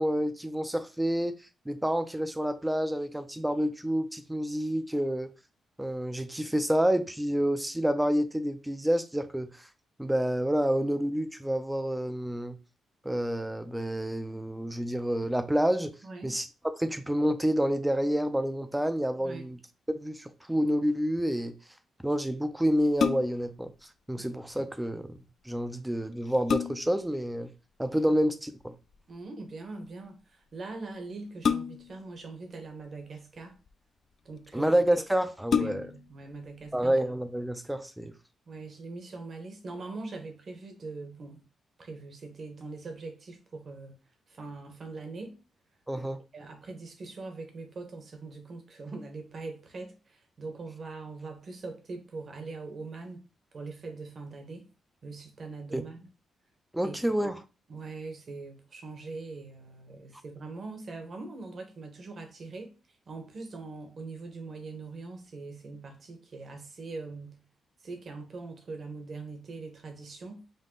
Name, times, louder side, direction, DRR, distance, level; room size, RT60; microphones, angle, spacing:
voice 1, 0.0-1.3 1.7-5.3 5.8-9.5 10.0-12.6 13.0-15.9 16.2-16.5 16.8-19.6 19.9-21.5 22.0-23.7 24.1-25.2 25.5-27.5 27.8-28.7 34.5-35.9 36.7-38.1 45.9-46.2 55.7-55.8 56.7-57.4, equal, 5° right, 0.5 m, -28 dB
voice 2, 16.0-16.3 19.2-19.5 24.2-24.3 29.1-33.6 34.2-34.7 35.5-37.0 38.5-41.4 41.8-44.0 44.3-45.4 46.3-53.2 53.5-54.7 55.0-56.0 56.8-57.0 57.7-62.7 63.1-67.4 67.8-70.4, right 3 dB, 45° right, 1.1 m, -42 dB
sound 1, 22.8-23.5 25.6-25.7 26.1-27.0 28.6-29.0 31.4-32.0 33.0-33.7 34.4-34.5 34.9-35.0 35.4-36.1 36.6-36.7, left 7 dB, 55° left, 0.4 m, -29 dB
5.3 x 2.2 x 3.8 m
cardioid pair, 115°, 0 cm